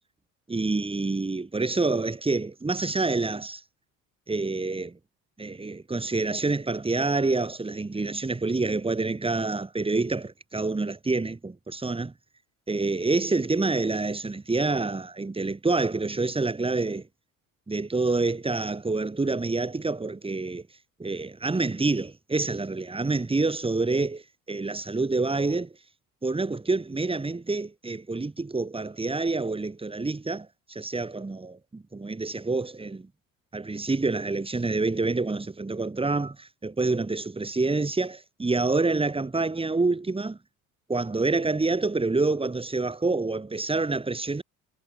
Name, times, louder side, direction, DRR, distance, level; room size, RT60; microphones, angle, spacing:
voice 1, 0.5-3.6 4.3-5.0 5.4-12.1 12.7-17.1 17.7-20.6 21.0-24.2 24.5-25.7 26.2-33.1 33.5-40.4 40.9-44.4, right 3 dB, 15° right, 1.9 m, -27 dB
hypercardioid pair, 65°, 39 cm